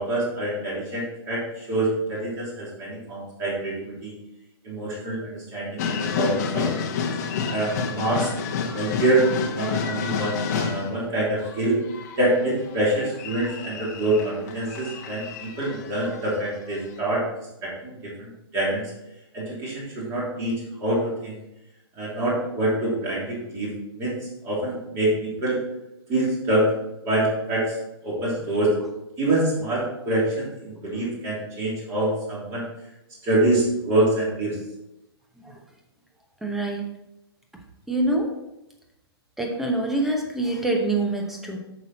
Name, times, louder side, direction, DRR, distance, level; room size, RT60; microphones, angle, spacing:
voice 1, 0.0-4.2 4.6-6.9 7.5-8.3 8.7-9.3 9.5-11.8 12.2-17.3 17.6-18.8 19.3-20.5 20.8-21.3 21.9-24.1 24.4-25.6 26.1-26.7 27.0-27.8 28.0-28.7 29.2-32.7 33.2-34.6, right 1 dB, 20° right, -5 dB, 3.1 m, -25 dB
sound 1, 5.8-11.0 11.4-16.4 16.7-16.8, left 6 dB, 40° left, 1.0 m, -29 dB
voice 2, 36.4-36.9 37.9-38.3 39.4-41.6, right 2 dB, ahead, 1 dB, 0.9 m, -25 dB
7.8 x 6.2 x 4.2 m, 0.91 s
hypercardioid pair, 160°, 14 cm